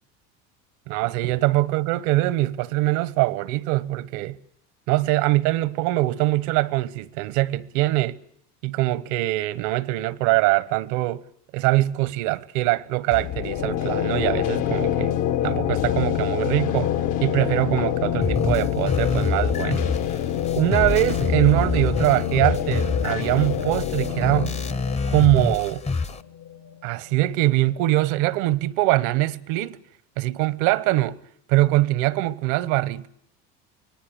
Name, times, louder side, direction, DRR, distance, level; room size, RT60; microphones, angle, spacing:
voice 1, 0.9-4.4 4.9-8.2 8.6-11.2 11.5-15.1 15.4-16.9 17.2-19.8 20.6-24.5 25.1-25.8 26.8-29.8 30.2-31.2 31.5-33.1, right 18 dB, 75° right, 1.2 m, -22 dB
sound 1, 13.1-26.8, left 11 dB, 60° left, 1.5 m, -26 dB
sound 2, 18.2-26.2, left 4 dB, 20° left, 0.9 m, -27 dB
25.0 x 19.0 x 8.2 m
supercardioid pair, 100°, 35 cm